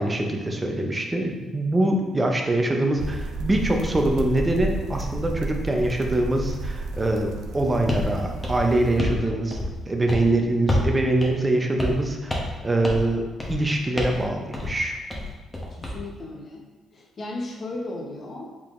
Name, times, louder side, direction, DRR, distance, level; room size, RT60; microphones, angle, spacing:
voice 1, 0.0-12.3 12.6-15.0, right 1 dB, 20° right, 2 dB, 0.6 m, -24 dB
sound 1, 3.0-9.0, right 2 dB, 85° right, 0.4 m, -31 dB
sound 2, 7.9-8.1 8.4-9.2 9.5-9.8 10.1-10.3 10.7-10.9 11.2-11.3 11.8-12.0 12.3-12.6 12.8-13.1 13.4-13.6 14.0-14.2 14.5-14.7 15.1-16.0, left 1 dB, 15° left, 0.9 m, -27 dB
voice 2, 15.7-16.6 16.9-18.4, left 2 dB, 45° left, -1 dB, 0.9 m, -35 dB
4.7 x 3.6 x 2.5 m, 1.2 s
cardioid pair, 90°, 0 cm